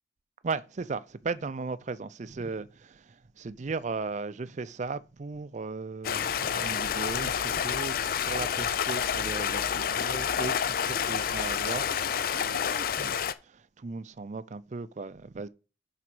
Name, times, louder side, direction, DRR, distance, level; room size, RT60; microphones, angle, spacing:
voice 1, 0.4-15.5, right 4 dB, 40° right, 0.5 m, -37 dB
Stream, 6.0-13.3, left 8 dB, 55° left, 0.4 m, -29 dB
6.1 x 4.8 x 6.1 m
head